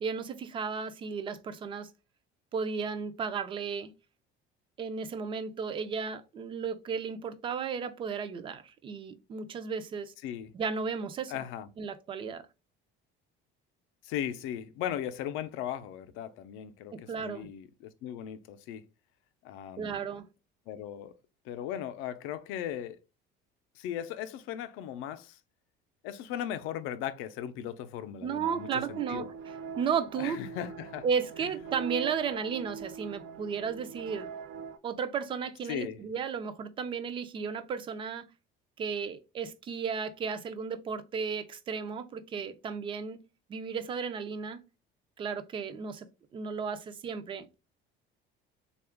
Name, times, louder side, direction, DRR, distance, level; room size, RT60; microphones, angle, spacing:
voice 1, 0.0-1.9 2.5-3.9 4.8-10.1 10.5-11.4 11.8-12.4 16.9-17.5 19.8-20.2 28.2-30.4 31.0-34.3 34.8-38.3 38.8-43.2 43.5-44.6 45.2-47.5, right 6 dB, 25° right, 0.3 m, -34 dB
voice 2, 11.3-11.7 14.0-18.8 19.4-20.0 20.7-21.1 21.4-23.0 23.8-25.4 26.0-29.3 30.2-31.1 35.7-36.0, left 10 dB, 70° left, 0.5 m, -37 dB
sound 1, 28.4-34.8, right 6 dB, 90° right, 0.5 m, -43 dB
3.7 x 2.3 x 3.4 m
cardioid pair, 165°, 21 cm